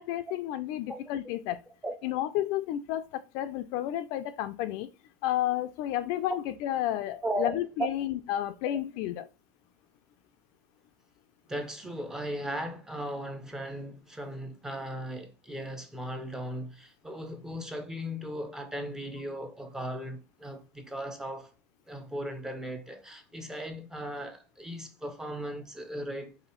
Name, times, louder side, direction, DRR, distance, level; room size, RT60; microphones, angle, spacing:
voice 1, 0.0-1.6 2.0-4.9 5.2-9.2, left 13 dB, 45° left, 0.4 m, -31 dB
voice 2, 7.2-7.9 11.5-21.5 21.9-26.4, right 1 dB, 5° right, 0.5 m, -37 dB
4.7 x 2.7 x 3.0 m
supercardioid pair, 160°, 9 cm